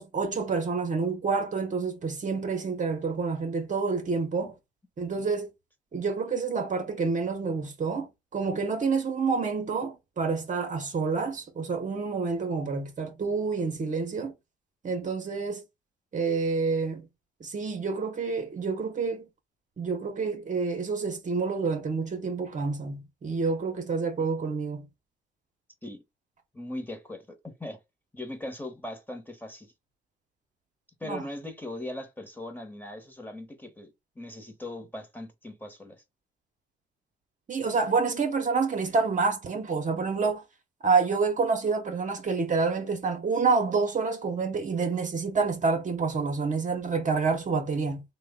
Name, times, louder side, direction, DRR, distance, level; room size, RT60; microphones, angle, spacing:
voice 1, 0.0-4.5 5.0-5.5 5.9-14.3 14.8-15.6 16.1-17.1 17.4-19.3 19.8-24.8 31.0-31.2 37.5-40.4 40.8-48.0, right 4 dB, 40° right, 0.8 m, -28 dB
voice 2, 26.5-27.8 28.1-29.7 31.0-36.0, left 1 dB, 10° left, 1.0 m, -39 dB
3.1 x 2.2 x 3.5 m
cardioid pair, 90°, 20 cm